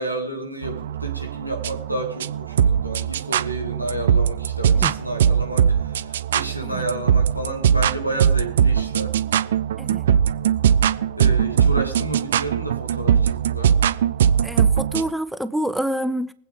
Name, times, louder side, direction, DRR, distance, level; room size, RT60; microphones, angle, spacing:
voice 1, 0.0-9.1 11.2-13.7, right 1 dB, 90° left, 2.6 m, -31 dB
sound 1, 0.6-15.1, right 8 dB, 60° right, 0.6 m, -21 dB
voice 2, 14.4-16.3, equal, 5° right, 0.6 m, -27 dB
23.0 x 8.6 x 3.7 m
figure-of-eight pair, 90°, 0 cm